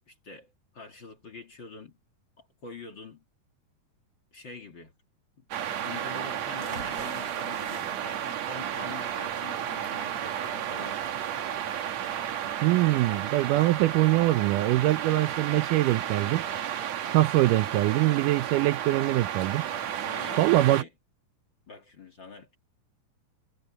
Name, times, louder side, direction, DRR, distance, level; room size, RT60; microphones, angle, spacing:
voice 1, 0.1-2.0 2.4-3.2 4.3-4.9 5.4-11.0 19.9-20.9 21.7-22.6, left 4 dB, 40° left, 2.2 m, -45 dB
sound 1, 5.5-20.8, right 10 dB, 60° right, 2.2 m, -33 dB
sound 2, 6.6-14.3, right 3 dB, 35° right, 3.9 m, -50 dB
voice 2, 12.6-16.4 17.1-19.6 20.4-20.8, right 17 dB, 80° right, 2.0 m, -23 dB
omnidirectional pair, 4.1 m